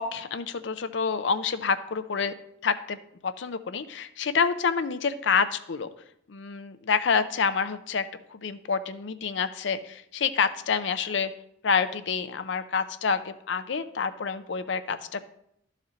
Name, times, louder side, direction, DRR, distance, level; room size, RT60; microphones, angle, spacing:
voice 1, 0.0-2.3 2.6-3.0 3.2-5.9 6.3-11.3 11.6-15.2, left 5 dB, 65° left, 12 dB, 0.5 m, -28 dB
12.0 x 4.2 x 5.0 m, 0.75 s
head